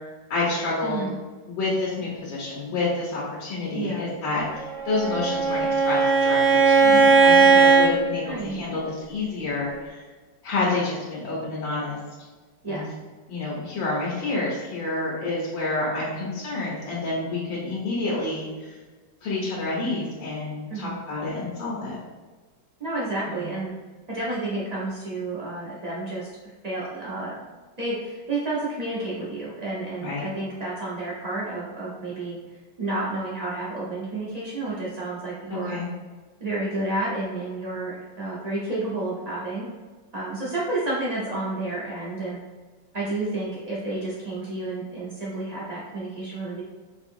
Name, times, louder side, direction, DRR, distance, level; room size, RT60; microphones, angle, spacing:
voice 1, 0.3-1.0 1.5-10.0 10.4-12.0 12.7-12.8 13.3-18.8 19.2-22.0 23.3-23.4 30.0-30.3 35.5-35.9, left 2 dB, 85° left, -5 dB, 1.7 m, -29 dB
voice 2, 0.8-1.1 3.7-4.1 8.2-8.6 12.6-12.9 20.7-21.0 22.8-23.7 24.1-26.3 26.6-27.4 27.8-32.4 32.8-35.8 36.4-39.7 40.1-42.4 42.9-46.6, right 2 dB, 80° right, -7 dB, 0.3 m, -30 dB
Bowed string instrument, 4.7-7.9, right 4 dB, 65° right, 1.1 m, -17 dB
5.4 x 2.8 x 2.6 m, 1.4 s
omnidirectional pair, 2.0 m